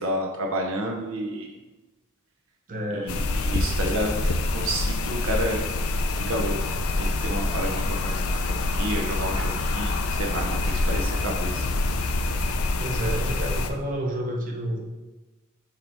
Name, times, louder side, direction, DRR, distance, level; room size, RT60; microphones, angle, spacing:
voice 1, 0.0-1.5 2.9-5.6 6.3-11.7, right 1 dB, 65° right, 1 dB, 0.7 m, -30 dB
voice 2, 2.7-3.2 12.8-14.8, right 1 dB, 40° right, 0 dB, 0.8 m, -30 dB
sound 1, 3.1-13.7, left 2 dB, 80° left, 0.5 m, -26 dB
6.7 x 3.4 x 4.4 m, 1.2 s
head